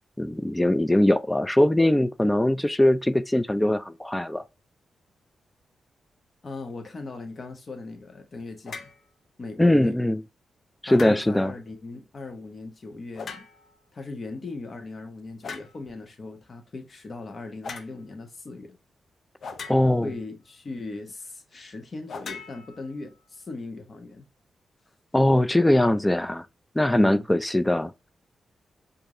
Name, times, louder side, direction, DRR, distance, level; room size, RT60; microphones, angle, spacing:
voice 1, 0.2-4.4 9.6-10.2 10.8-11.5 19.7-20.1 25.1-26.5 26.8-27.9, left 1 dB, 10° left, 0.3 m, -21 dB
voice 2, 6.4-8.9 9.4-10.1 10.8-13.5 13.9-18.8 20.0-24.3 26.9-27.2, left 3 dB, 45° left, 1.0 m, -38 dB
sound 1, 8.6-9.0 10.9-11.5 13.1-13.8 15.4-15.8 17.6-17.9 19.4-20.2 22.1-23.2, left 5 dB, 65° left, 0.6 m, -40 dB
4.5 x 2.6 x 2.6 m
cardioid pair, 60°, 0 cm